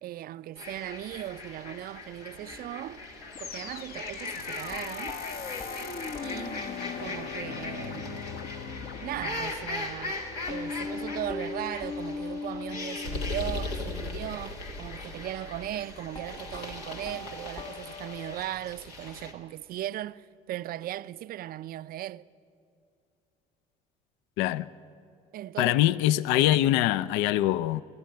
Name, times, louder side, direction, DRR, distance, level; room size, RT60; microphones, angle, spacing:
voice 1, 0.0-3.0 3.4-5.2 6.2-6.7 7.0-8.3 9.0-10.2 10.5-22.3 25.3-25.7, right 13 dB, 50° right, 0.4 m, -38 dB
sound 1, 0.6-19.3, left 3 dB, 85° left, 1.5 m, -39 dB
sound 2, 2.4-8.9 9.6-9.7 10.2-18.4, left 3 dB, 20° left, 0.7 m, -42 dB
sound 3, 3.3-12.5, left 6 dB, 50° left, 0.9 m, -41 dB
voice 2, 24.4-24.7 25.6-27.8, left 14 dB, 70° left, 0.4 m, -23 dB
17.0 x 10.5 x 7.8 m
hypercardioid pair, 60°, 20 cm